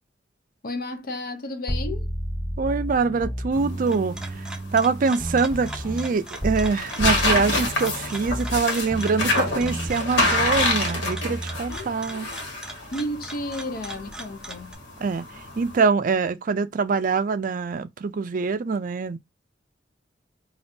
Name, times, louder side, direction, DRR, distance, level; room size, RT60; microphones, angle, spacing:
voice 1, 0.6-2.1 11.7-12.4 12.9-14.8, left 1 dB, 50° left, 0.7 m, -33 dB
sound 1, 1.7-6.7 7.0-11.8, equal, 15° left, 1.4 m, -32 dB
voice 2, 2.6-12.3 15.0-15.3 15.6-19.2, right 4 dB, 50° right, 0.4 m, -24 dB
sound 2, 3.5-15.8, left 2 dB, 80° left, 1.3 m, -28 dB
sound 3, 3.6-14.7, right 1 dB, 5° right, 0.6 m, -41 dB
5.2 x 2.4 x 2.7 m
head